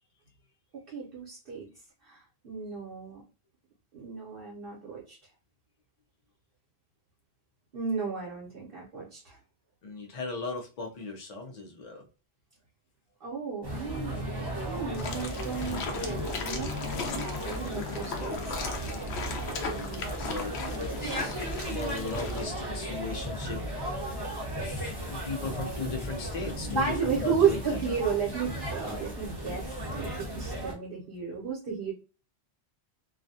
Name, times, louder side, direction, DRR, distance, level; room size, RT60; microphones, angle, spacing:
voice 1, 0.7-1.7 2.0-3.2 3.9-5.2 7.7-9.4 13.2-14.3 14.6-18.6 26.7-31.9, right 6 dB, 60° right, -4 dB, 0.9 m, -33 dB
voice 2, 9.8-12.1 19.6-21.4 21.7-23.6 23.9-24.2 24.6-28.0, left 3 dB, 45° left, 2 dB, 0.7 m, -38 dB
sound 1, 13.6-30.7, equal, 25° right, 0.8 m, -35 dB
sound 2, 14.9-22.4, left 4 dB, 85° left, 0.9 m, -38 dB
2.4 x 2.2 x 2.6 m, 0.33 s
omnidirectional pair, 1.1 m